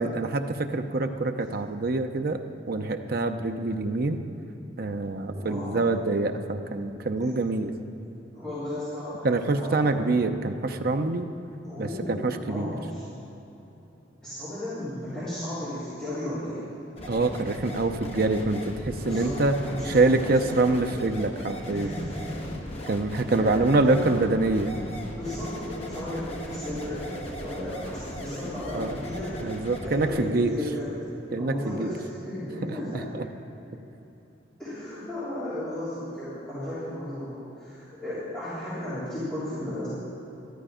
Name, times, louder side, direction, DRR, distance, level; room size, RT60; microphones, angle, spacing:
voice 1, 0.0-2.4 2.7-4.2 4.8-7.7 9.2-11.3 11.8-12.7 17.1-19.5 19.9-21.9 22.9-24.7 28.7-28.9 29.4-30.5 31.3-31.9 33.2-33.3, right 2 dB, 50° right, 6 dB, 0.6 m, -25 dB
voice 2, 5.3-5.9 7.2-7.3 8.3-10.1 11.6-13.0 14.2-16.7 19.0-20.7 21.7-22.5 23.4-24.2 25.2-30.9 31.4-33.2 34.6-39.9, left 1 dB, 5° left, -15 dB, 3.6 m, -35 dB
sound 1, 17.0-30.3, left 1 dB, 35° left, 1.2 m, -38 dB
13.0 x 11.5 x 5.0 m, 3.0 s
head